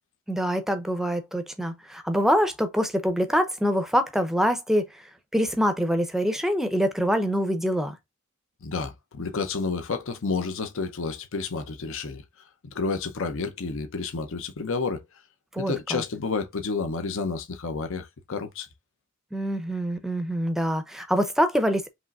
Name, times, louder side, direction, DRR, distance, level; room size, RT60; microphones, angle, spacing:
voice 1, 0.3-5.0 5.3-8.0 15.5-16.0 19.3-21.9, equal, ahead, 0.6 m, -25 dB
voice 2, 8.6-12.2 12.7-15.0 15.6-18.7, left 4 dB, 60° left, 0.7 m, -30 dB
5.2 x 3.0 x 2.4 m
head